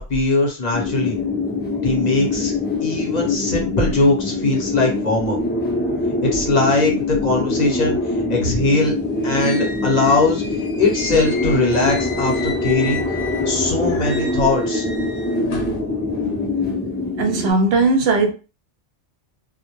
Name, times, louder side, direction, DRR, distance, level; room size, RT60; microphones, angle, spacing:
voice 1, 0.1-1.2 1.8-2.5 2.8-5.4 6.2-8.0 8.3-8.9 9.2-10.4 10.8-13.0 13.5-14.8, left 2 dB, 40° left, 0.7 m, -20 dB
sound 1, 0.7-17.5, left 3 dB, 15° left, 0.3 m, -24 dB
sound 2, 8.8-13.6 13.9-15.8, left 4 dB, 70° left, 1.0 m, -34 dB
voice 2, 17.2-18.3, right 3 dB, 65° right, 0.7 m, -18 dB
2.1 x 2.1 x 3.0 m
omnidirectional pair, 1.3 m